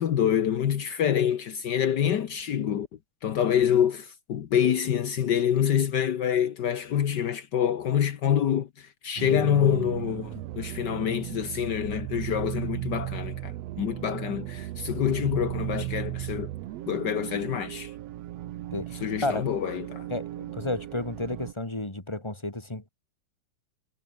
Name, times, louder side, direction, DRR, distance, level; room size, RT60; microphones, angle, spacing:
voice 1, 0.0-2.9 3.2-16.5 16.9-17.9 19.0-20.1, left 9 dB, 70° left, 1.0 m, -26 dB
sound 1, 9.2-21.5, right 14 dB, 70° right, 1.8 m, -36 dB
voice 2, 18.7-19.4 20.1-22.9, left 2 dB, 10° left, 3.1 m, -32 dB
omnidirectional pair, 3.5 m